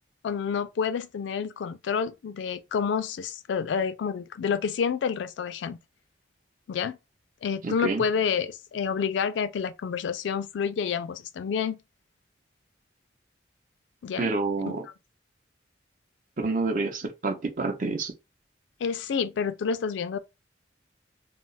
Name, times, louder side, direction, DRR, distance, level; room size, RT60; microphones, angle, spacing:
voice 1, 0.2-5.8 6.7-7.0 7.4-11.8 14.0-14.3 18.8-20.2, left 6 dB, 85° left, 0.3 m, -29 dB
voice 2, 7.6-8.0 14.2-14.9 16.4-18.1, right 3 dB, 45° right, 0.6 m, -28 dB
2.3 x 2.0 x 3.8 m
head